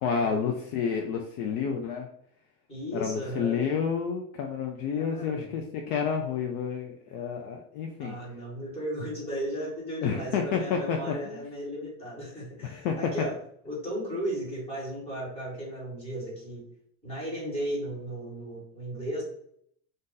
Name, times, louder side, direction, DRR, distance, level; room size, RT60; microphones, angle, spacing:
voice 1, 0.0-2.1 2.9-8.2 10.0-11.4 12.6-13.0, left 6 dB, 55° left, 2 dB, 0.5 m, -30 dB
voice 2, 2.7-3.7 5.0-5.5 8.0-13.3 13.6-16.6 17.0-19.2, right 1 dB, 10° left, -6 dB, 1.3 m, -35 dB
2.6 x 2.5 x 3.7 m, 0.67 s
cardioid pair, 175°, 49 cm